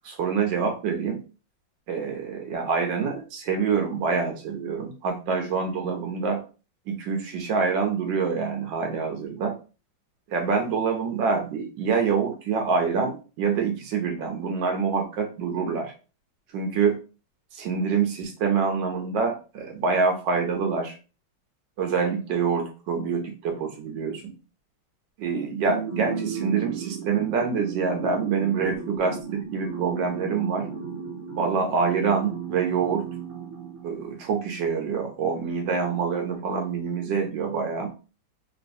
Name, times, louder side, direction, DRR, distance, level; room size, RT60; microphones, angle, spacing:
voice 1, 0.0-1.2 1.9-6.4 6.9-9.5 10.3-15.9 16.5-17.0 17.5-20.9 21.8-24.3 25.2-30.7 31.3-33.1 33.8-37.9, right 5 dB, 75° right, 3 dB, 1.3 m, -26 dB
sound 1, 25.6-34.4, right 6 dB, 50° right, 0.9 m, -35 dB
3.1 x 3.0 x 2.6 m, 0.33 s
omnidirectional pair, 2.1 m